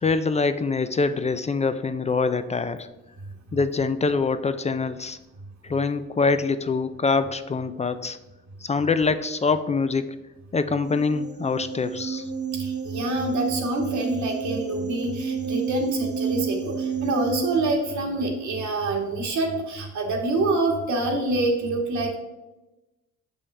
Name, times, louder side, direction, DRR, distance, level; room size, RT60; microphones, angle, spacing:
voice 1, 0.0-2.9 3.5-5.2 5.6-8.2 8.6-10.1 10.5-12.3, left 4 dB, 25° left, 11 dB, 0.3 m, -24 dB
sound 1, 10.8-17.6, right 6 dB, 35° right, 0.8 m, -30 dB
voice 2, 12.5-22.2, right 2 dB, 70° right, 1 dB, 1.6 m, -26 dB
6.9 x 5.5 x 3.2 m, 1.0 s
cardioid pair, 90°, 30 cm